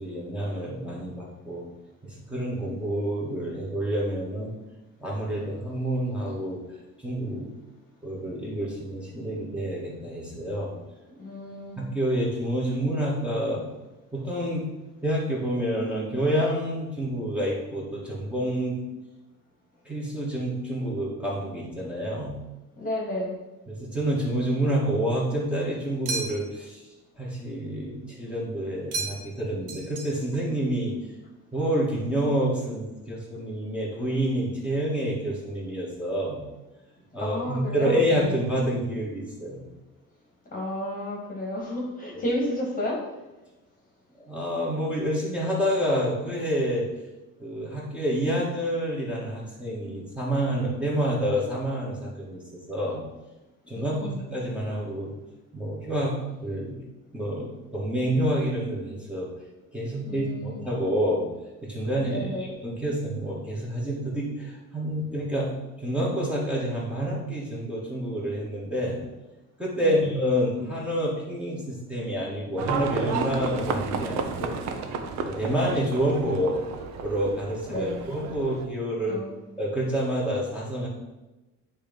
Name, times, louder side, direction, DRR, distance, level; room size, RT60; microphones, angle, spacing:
voice 1, 0.0-1.6 2.0-4.5 5.0-7.5 8.0-10.7 11.8-13.6 14.1-14.7 15.0-18.8 19.9-22.4 23.7-26.8 27.2-31.0 31.5-36.4 37.1-39.7 44.2-46.9 47.4-53.0 53.7-55.1 55.5-56.8 57.1-59.3 59.7-61.3 61.6-65.5 65.8-69.0 69.6-74.9 75.2-76.6 77.0-79.2 79.6-80.9, equal, 5° right, -5 dB, 1.9 m, -28 dB
voice 2, 11.2-11.8 22.8-23.4 37.2-38.4 40.5-43.1 53.7-54.3 59.8-60.6 62.1-62.5 69.7-70.1 77.7-78.0 79.1-79.4, left 1 dB, 25° left, -2 dB, 1.6 m, -32 dB
sound 1, 26.1-26.7 28.9-29.4 29.7-30.4, right 3 dB, 80° right, 1.6 m, -33 dB
Livestock farm animals working animals, 72.6-78.6, right 5 dB, 60° right, 0.8 m, -32 dB
9.7 x 3.3 x 5.4 m, 1.1 s
cardioid pair, 145°, 31 cm